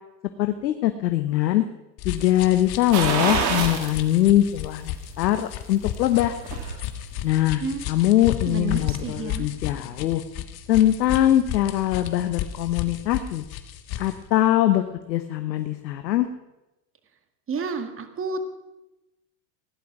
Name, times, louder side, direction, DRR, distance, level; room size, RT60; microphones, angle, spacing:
voice 1, 0.4-1.6 2.0-6.3 7.2-7.6 7.9-10.2 10.7-13.4 14.0-16.3, left 13 dB, 90° left, 9 dB, 1.1 m, -22 dB
sound 1, 2.0-14.2, left 10 dB, 50° left, 1.6 m, -33 dB
sound 2, 2.9-4.0 4.4-4.5 6.0-6.8 7.2-7.3, right 6 dB, 80° right, 2.8 m, -26 dB
voice 2, 8.5-9.5 17.5-18.4, right 4 dB, 25° right, 8 dB, 1.8 m, -30 dB
16.5 x 11.0 x 6.0 m, 0.98 s
supercardioid pair, 105°, 50 cm